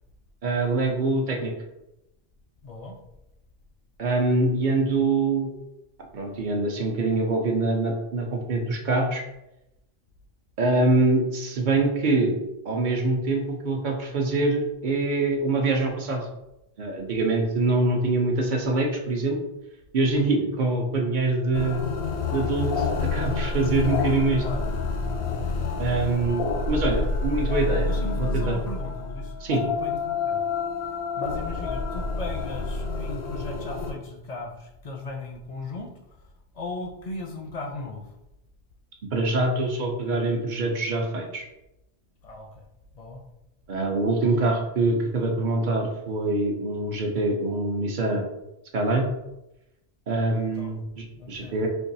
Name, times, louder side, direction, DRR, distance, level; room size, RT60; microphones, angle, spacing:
voice 1, 0.4-1.5 4.0-5.5 6.1-9.2 10.6-12.4 12.7-16.3 16.8-19.4 19.9-21.8 22.3-24.4 25.8-27.9 28.2-28.6 29.4-29.6 39.1-41.4 43.7-48.2 48.7-49.0 50.1-51.7, right 2 dB, 55° right, 2 dB, 0.7 m, -24 dB
voice 2, 2.6-3.0 24.4-24.6 26.1-26.4 27.8-30.4 31.2-35.9 36.5-38.0 42.2-42.6 43.0-43.2 50.6-50.7 51.2-51.6, left 2 dB, 50° left, 0 dB, 0.5 m, -37 dB
sound 1, 21.5-33.9, left 4 dB, 80° left, 0.9 m, -28 dB
4.4 x 2.3 x 2.6 m, 0.90 s
omnidirectional pair, 1.1 m